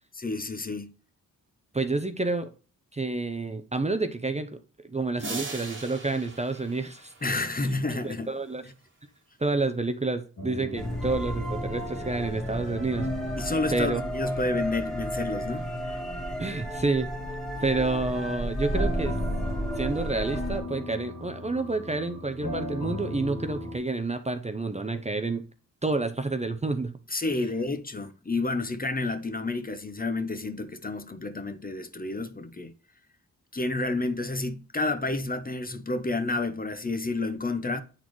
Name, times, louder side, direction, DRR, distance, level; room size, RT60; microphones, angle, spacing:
voice 1, 0.1-0.9 7.2-8.3 13.4-15.7 27.1-32.7 33.5-37.8, left 2 dB, 25° left, 0.7 m, -30 dB
voice 2, 1.7-2.5 2.9-7.1 7.6-8.7 9.4-13.1 13.7-14.0 16.4-17.1 17.6-19.2 19.8-25.4 25.8-26.9, right 3 dB, 20° right, 0.6 m, -29 dB
sound 1, 5.2-7.7, right 3 dB, 35° right, 1.4 m, -39 dB
sound 2, 10.4-23.8, left 1 dB, 80° left, 2.7 m, -38 dB
sound 3, 10.8-20.6, equal, ahead, 1.8 m, -32 dB
8.7 x 4.1 x 3.0 m
wide cardioid pair, 85°, 34 cm